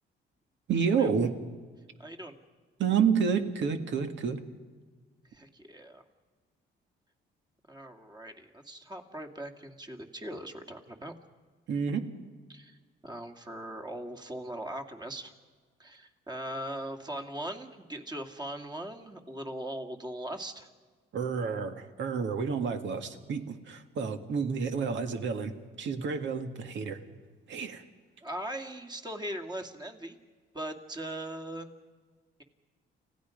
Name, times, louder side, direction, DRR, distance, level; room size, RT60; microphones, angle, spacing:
voice 1, 0.7-1.4 2.8-4.4 11.7-12.1 21.1-25.5 25.8-27.0 27.5-27.8, right 6 dB, 70° right, 7 dB, 1.9 m, -29 dB
voice 2, 2.0-2.3 5.3-6.0 7.7-11.1 12.5-12.8 13.0-15.3 15.8-20.7 28.2-30.2 30.5-31.7, right 1 dB, 20° right, 4 dB, 2.3 m, -40 dB
29.5 x 16.5 x 5.2 m, 1.4 s
cardioid pair, 90°, 20 cm